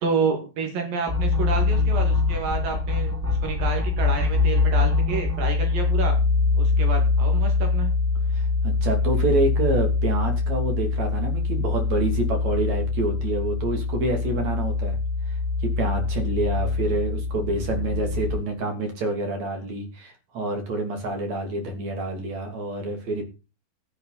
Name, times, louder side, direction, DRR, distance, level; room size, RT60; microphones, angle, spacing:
voice 1, 0.0-6.2 6.5-7.9, right 4 dB, 65° right, 4 dB, 3.8 m, -29 dB
sound 1, 1.1-18.4, left 4 dB, 10° right, 0.8 m, -23 dB
voice 2, 8.3-15.0 15.3-15.4 15.6-23.2, right 2 dB, 50° right, 4 dB, 3.8 m, -27 dB
13.5 x 10.0 x 4.1 m, 0.30 s
omnidirectional pair, 4.4 m